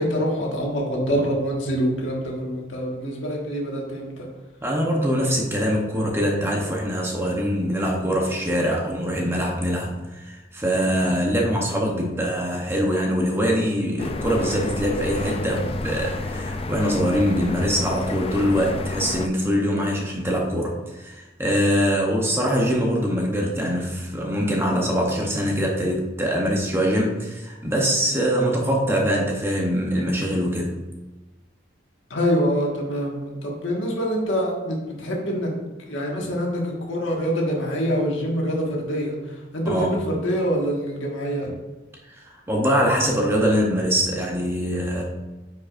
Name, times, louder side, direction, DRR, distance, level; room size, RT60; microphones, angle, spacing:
voice 1, 0.0-4.3 32.1-35.5 35.9-41.5, equal, 75° left, -1 dB, 1.6 m, -25 dB
voice 2, 4.6-30.8 39.6-40.0 42.2-45.0, equal, 10° right, -1 dB, 0.8 m, -23 dB
sound 1, 14.0-19.3, left 2 dB, 30° left, 0.3 m, -30 dB
9.4 x 4.9 x 2.5 m, 1.2 s
head